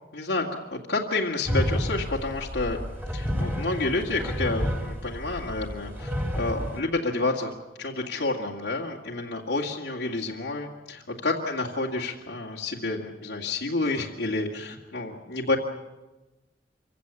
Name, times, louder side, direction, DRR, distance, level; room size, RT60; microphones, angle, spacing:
voice 1, 0.1-2.8 3.1-7.5 7.8-15.6, left 2 dB, 75° left, -4 dB, 2.3 m, -29 dB
sound 1, 1.5-6.8, equal, 10° right, 2.5 m, -30 dB
26.0 x 16.0 x 8.6 m, 1.1 s
head